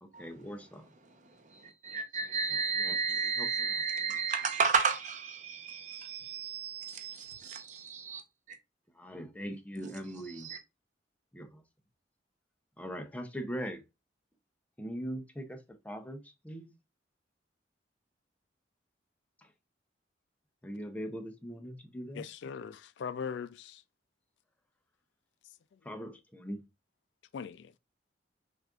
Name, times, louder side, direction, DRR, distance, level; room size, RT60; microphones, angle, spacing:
voice 1, 0.0-0.9 2.8-3.0 3.4-3.7 9.0-10.5 11.3-11.6 12.8-13.8 14.8-16.7 20.6-22.2 25.8-26.6, equal, 10° left, 0.5 m, -41 dB
voice 2, 1.4-8.2 8.5-8.6 9.8-9.9 10.3-10.6, right 5 dB, 45° right, 0.7 m, -33 dB
voice 3, 22.1-23.8 27.3-27.8, left 6 dB, 70° left, 0.3 m, -40 dB
6.2 x 2.5 x 2.3 m
head